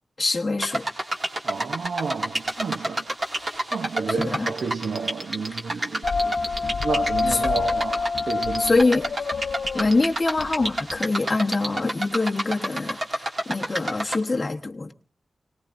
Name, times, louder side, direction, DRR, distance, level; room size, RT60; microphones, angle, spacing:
voice 1, 0.2-0.8 4.1-4.5 7.3-7.4 8.6-9.1 9.7-14.9, left 3 dB, 25° left, 1.1 m, -24 dB
sound 1, 0.6-14.2, right 1 dB, 30° right, 2.1 m, -30 dB
voice 2, 1.4-3.1 3.7-6.4 6.8-8.7, right 5 dB, 70° right, 0.7 m, -31 dB
sound 2, 6.0-11.0, left 4 dB, 65° left, 0.7 m, -27 dB
29.0 x 19.0 x 2.6 m
wide cardioid pair, 160°, 0 cm